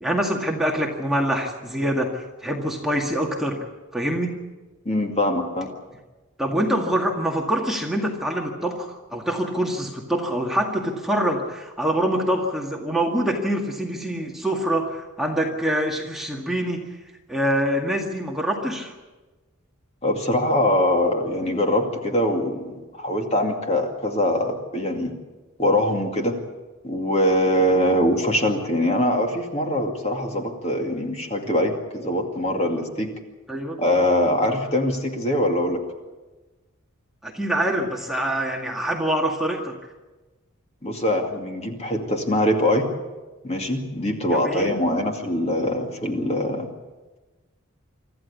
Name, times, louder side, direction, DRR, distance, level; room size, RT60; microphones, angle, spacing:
voice 1, 0.0-3.6 3.9-4.4 6.4-16.9 17.3-18.9 33.5-33.8 37.2-39.7 44.3-44.7, right 1 dB, ahead, -1 dB, 2.0 m, -25 dB
voice 2, 4.9-5.7 20.0-25.1 25.6-26.4 26.8-33.1 33.8-35.8 40.8-42.9 43.4-46.7, left 1 dB, 30° left, 3 dB, 2.4 m, -23 dB
25.0 x 14.0 x 8.4 m, 1.2 s
head